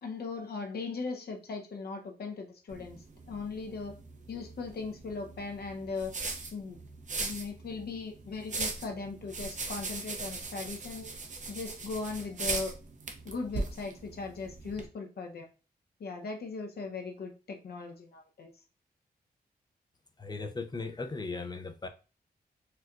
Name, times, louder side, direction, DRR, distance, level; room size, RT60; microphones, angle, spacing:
voice 1, 0.0-4.0 4.3-6.1 6.5-6.8 7.2-11.1 11.5-12.7 13.2-15.5 16.0-18.5, left 4 dB, 70° left, 2 dB, 0.8 m, -38 dB
sound 1, 2.7-14.9, right 3 dB, 50° right, 0.7 m, -39 dB
voice 2, 20.2-21.9, left 3 dB, 25° left, 6 dB, 0.5 m, -37 dB
4.3 x 2.2 x 2.4 m, 0.33 s
wide cardioid pair, 90°, 17 cm